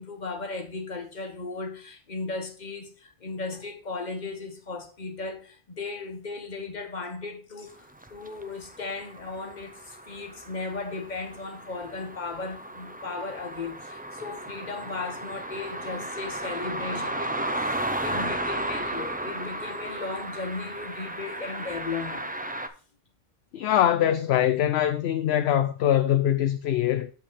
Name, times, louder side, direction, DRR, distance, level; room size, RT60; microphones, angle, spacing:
voice 1, 0.0-17.8 18.0-22.3, left 3 dB, 40° left, 1.4 m, -36 dB
sound 1, 8.0-22.7, right 1 dB, 15° right, 0.3 m, -34 dB
voice 2, 23.5-27.1, left 11 dB, 65° left, 0.8 m, -23 dB
7.2 x 5.4 x 4.1 m
omnidirectional pair, 1.2 m